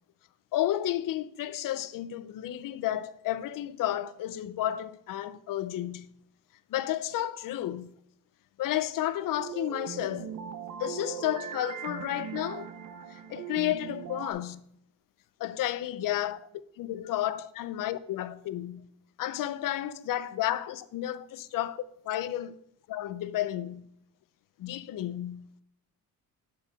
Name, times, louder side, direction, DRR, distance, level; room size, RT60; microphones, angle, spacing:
voice 1, 0.5-6.1 6.7-7.9 8.6-10.3 10.8-12.7 13.3-14.6 15.4-16.5 16.8-18.9 19.2-22.6 22.9-23.9 24.6-25.5, left 13 dB, 65° left, 0.6 m, -32 dB
sound 1, 9.3-14.3, right 8 dB, 55° right, 0.9 m, -39 dB
8.3 x 4.8 x 4.7 m
cardioid pair, 100°, 35 cm